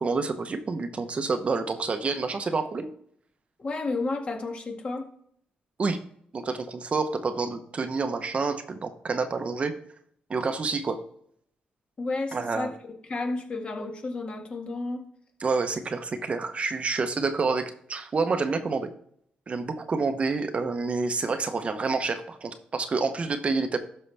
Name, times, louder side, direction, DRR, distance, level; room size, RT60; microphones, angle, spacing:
voice 1, 0.0-2.9 5.8-6.0 6.3-9.7 10.3-11.0 12.3-12.7 15.4-18.9 19.5-23.8, right 4 dB, 40° right, 8 dB, 0.9 m, -28 dB
voice 2, 3.6-5.1 12.0-12.7 13.0-15.0, left 3 dB, 35° left, 3 dB, 1.9 m, -31 dB
12.5 x 5.5 x 3.4 m, 0.66 s
cardioid pair, 85°, 3 cm